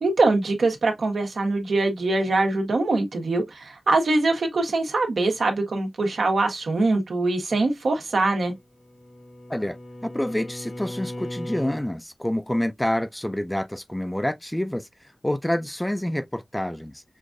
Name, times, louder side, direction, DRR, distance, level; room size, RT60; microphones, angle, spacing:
voice 1, 0.0-8.5, right 2 dB, 85° right, 1.3 m, -23 dB
Bowed string instrument, 8.5-11.9, left 1 dB, 85° left, 1.4 m, -38 dB
voice 2, 10.0-14.9 15.2-17.0, left 1 dB, 10° left, 0.4 m, -27 dB
6.3 x 2.5 x 2.6 m
wide cardioid pair, 80°, 0 cm